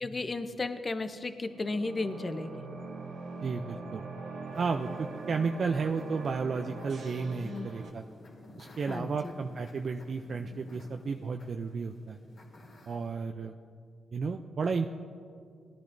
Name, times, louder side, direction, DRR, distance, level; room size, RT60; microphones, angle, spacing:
voice 1, 0.0-2.5 7.4-7.7 8.9-9.1, left 3 dB, 35° left, 9 dB, 0.7 m, -34 dB
sound 1, 1.5-7.9, right 3 dB, 75° right, 1.2 m, -42 dB
voice 2, 3.4-4.0 4.6-8.0 8.6-12.2 12.9-13.5 14.1-14.9, right 4 dB, 55° right, 5 dB, 0.4 m, -33 dB
sound 2, 4.5-13.1, left 1 dB, 65° left, 2.3 m, -54 dB
18.0 x 10.0 x 2.7 m, 2.3 s
cardioid pair, 70°, 0 cm